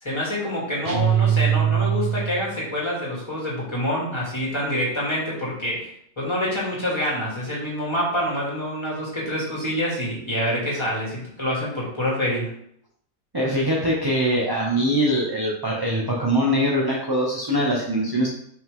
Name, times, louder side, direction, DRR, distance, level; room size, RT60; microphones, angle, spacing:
voice 1, 0.0-5.9 6.2-12.5, equal, 20° left, -6 dB, 2.5 m, -26 dB
sound 1, 0.8-2.6, right 9 dB, 45° right, 0.7 m, -21 dB
voice 2, 13.3-18.3, equal, 20° right, -3 dB, 0.9 m, -22 dB
5.8 x 5.4 x 3.7 m, 0.68 s
omnidirectional pair, 1.6 m